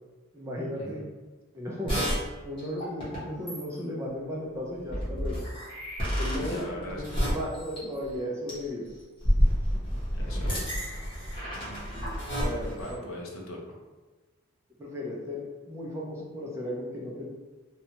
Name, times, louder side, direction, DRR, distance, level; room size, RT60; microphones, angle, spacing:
voice 1, 0.3-1.0 1.5-5.4 6.2-8.9 12.4-13.1 14.8-17.2, equal, 10° right, -4 dB, 0.3 m, -35 dB
sound 1, 1.9-2.2 2.6-3.2 3.5-3.8 4.9-8.2 8.5-8.7 9.2-12.9, equal, 25° left, 0.8 m, -29 dB
voice 2, 6.4-7.3 10.1-10.6 12.7-13.6, left 1 dB, 65° left, -1 dB, 0.6 m, -41 dB
2.7 x 2.1 x 2.8 m, 1.2 s
head